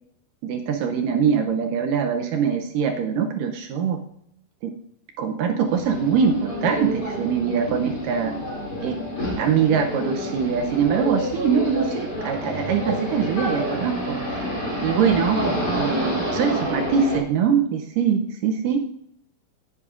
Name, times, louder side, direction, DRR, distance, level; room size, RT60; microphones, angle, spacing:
voice 1, 0.4-4.0 4.6-4.7 5.2-8.3 8.8-9.0 9.4-14.4 14.8-18.8, right 6 dB, 75° right, 4 dB, 2.1 m, -23 dB
sound 1, 5.7-17.2, equal, 30° left, 3.6 m, -28 dB
15.0 x 8.5 x 2.5 m, 0.73 s
omnidirectional pair, 4.3 m